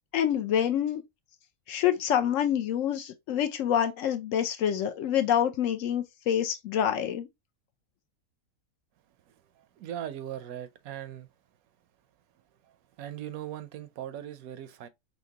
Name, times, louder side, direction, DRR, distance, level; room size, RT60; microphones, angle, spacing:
voice 1, 0.1-1.0 1.7-7.3, left 9 dB, 70° left, 0.9 m, -27 dB
voice 2, 9.6-11.3 12.6-14.9, right 11 dB, 80° right, 1.0 m, -39 dB
5.7 x 2.2 x 2.7 m
omnidirectional pair, 1.5 m